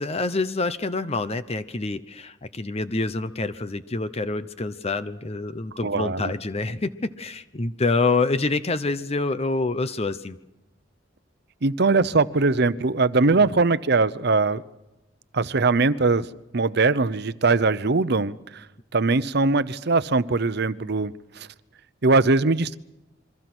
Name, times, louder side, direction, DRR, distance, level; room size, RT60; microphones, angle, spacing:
voice 1, 0.0-10.4, left 3 dB, 35° left, 12 dB, 0.8 m, -26 dB
voice 2, 5.8-6.3 11.6-14.6 15.3-16.3 16.5-18.6 18.9-21.5 22.0-22.8, right 3 dB, 60° right, 15 dB, 0.8 m, -21 dB
28.0 x 23.0 x 6.2 m, 0.95 s
head